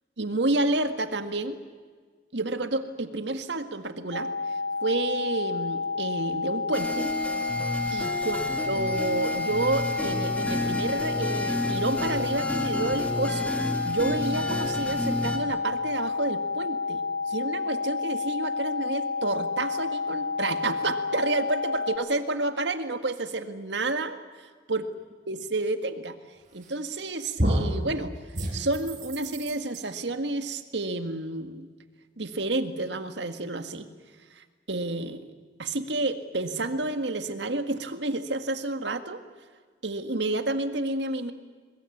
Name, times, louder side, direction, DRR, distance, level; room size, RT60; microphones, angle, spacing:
voice 1, 0.2-1.6 2.3-4.3 4.8-7.2 7.9-8.4 8.7-13.5 13.8-17.0 17.3-24.9 25.3-26.2 26.5-28.1 28.5-31.7 32.2-33.9 34.4-35.3 35.6-39.2 39.8-41.3, right 2 dB, 80° right, 9 dB, 1.8 m, -30 dB
sound 1, 4.1-22.0, left 4 dB, 40° left, 2.3 m, -30 dB
sound 2, 6.7-15.4, equal, 5° left, 2.0 m, -31 dB
sound 3, 26.6-27.0 27.4-27.8 28.3-29.8, equal, 45° right, 5.9 m, -28 dB
22.0 x 22.0 x 8.5 m, 1.5 s
head